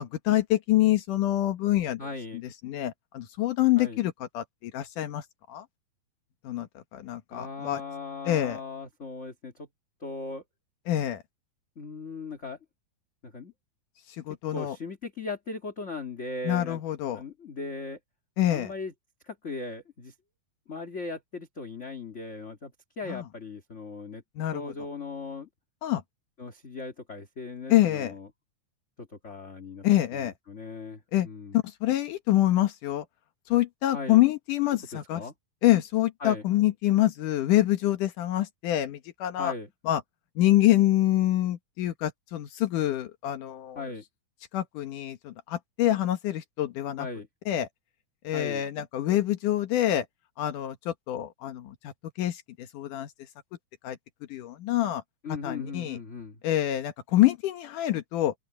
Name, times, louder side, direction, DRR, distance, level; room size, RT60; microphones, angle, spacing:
voice 1, 0.0-2.0 2.4-5.7 6.4-7.8 8.3-8.6 10.9-11.2 14.3-14.8 16.4-17.2 18.4-18.7 23.1-23.2 24.4-24.7 25.8-26.0 27.7-28.1 29.8-30.3 31.1-31.3 31.5-33.1 33.5-35.2 35.6-39.5 39.8-40.0 40.4-43.8 44.5-47.1 47.5-47.7 48.2-50.1 50.4-53.1 53.8-54.0 54.3-55.0 55.4-56.0 56.4-58.3, left 14 dB, 80° left, 2.8 m, -26 dB
voice 2, 2.0-2.4 3.8-4.0 7.3-9.7 10.0-10.4 11.7-12.6 13.2-13.5 14.5-16.8 17.1-18.0 18.5-18.9 19.2-20.1 20.7-24.2 24.5-25.5 26.4-28.3 29.0-29.8 30.1-31.6 33.9-34.2 35.1-35.3 36.2-36.4 39.4-39.7 43.7-44.0 47.0-47.3 48.3-48.6 55.2-56.4, left 3 dB, 25° left, 1.8 m, -38 dB
open air
omnidirectional pair, 3.6 m